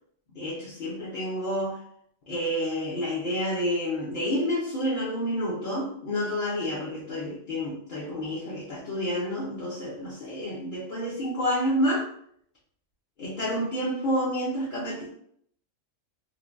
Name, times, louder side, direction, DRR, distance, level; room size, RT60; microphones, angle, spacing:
voice 1, 0.3-1.8 2.3-12.1 13.2-15.2, equal, 50° left, -8 dB, 0.7 m, -29 dB
3.2 x 2.2 x 2.5 m, 0.66 s
omnidirectional pair, 1.4 m